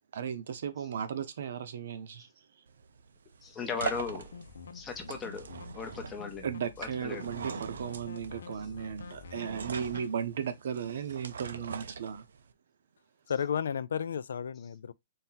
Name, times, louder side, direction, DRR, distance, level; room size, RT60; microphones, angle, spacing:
voice 1, 0.1-2.3 6.4-12.3, right 7 dB, 50° right, 0.7 m, -36 dB
sound 1, 2.7-12.5, right 6 dB, 90° right, 0.6 m, -43 dB
voice 2, 3.4-4.3 4.7-6.4 6.8-7.3, left 5 dB, 10° left, 0.7 m, -37 dB
sound 2, 3.9-10.1, left 4 dB, 85° left, 0.8 m, -48 dB
voice 3, 13.3-14.9, left 7 dB, 70° left, 0.4 m, -32 dB
4.3 x 2.8 x 3.9 m
hypercardioid pair, 180°, 0 cm